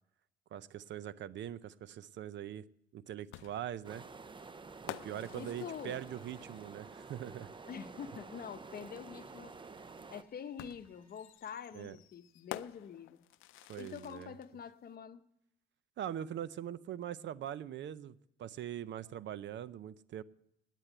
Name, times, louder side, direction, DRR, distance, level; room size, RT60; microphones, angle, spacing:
voice 1, 0.5-2.6 2.9-4.0 4.8-7.5 11.7-12.0 13.7-14.3 16.0-20.2, right 10 dB, 65° right, 0.6 m, -42 dB
sound 1, 3.3-7.0 8.4-8.5 10.6-14.5, left 14 dB, 90° left, 0.5 m, -50 dB
sound 2, 3.8-10.2, right 4 dB, 25° right, 0.6 m, -50 dB
sound 3, 4.3-11.3, left 2 dB, 10° left, 4.0 m, -71 dB
voice 2, 5.3-6.0 7.7-9.6 10.1-13.2 13.8-15.2, left 7 dB, 50° left, 0.8 m, -46 dB
9.8 x 9.1 x 8.9 m
cardioid pair, 90°, 20 cm